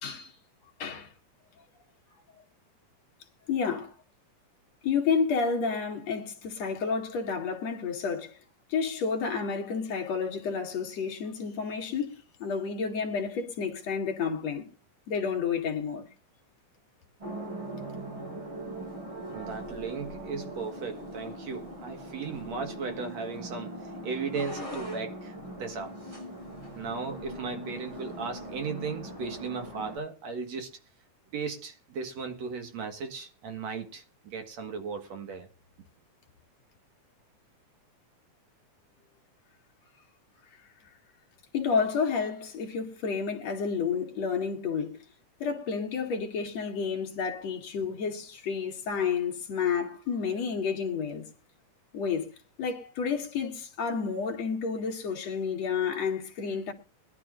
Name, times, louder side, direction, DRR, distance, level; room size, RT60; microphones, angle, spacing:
voice 1, 0.0-0.3 0.8-1.1 3.5-3.9 4.8-8.4 8.7-12.1 12.4-14.7 15.1-16.1 41.5-45.0 45.4-51.3 51.9-56.7, left 6 dB, 55° left, 3.0 m, -30 dB
sound 1, 17.2-30.0, right 1 dB, 40° right, 8.1 m, -40 dB
voice 2, 19.3-25.9 26.7-30.7 31.3-35.5, right 5 dB, 60° right, 2.8 m, -36 dB
22.5 x 12.0 x 2.6 m
omnidirectional pair, 3.7 m